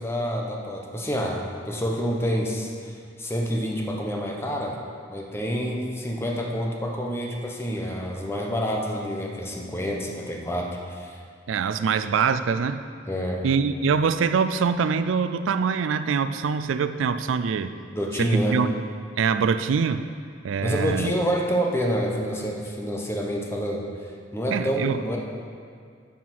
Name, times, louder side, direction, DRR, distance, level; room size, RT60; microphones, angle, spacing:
voice 1, 0.0-4.8 5.1-11.2 13.1-13.4 17.9-18.6 20.6-23.8 24.3-25.2, equal, 15° left, 0 dB, 1.0 m, -28 dB
voice 2, 11.5-12.8 13.4-17.7 18.2-18.7 19.2-20.1 20.4-21.1 24.5-25.0, right 6 dB, 85° right, 11 dB, 0.4 m, -24 dB
9.4 x 5.8 x 5.9 m, 2.2 s
head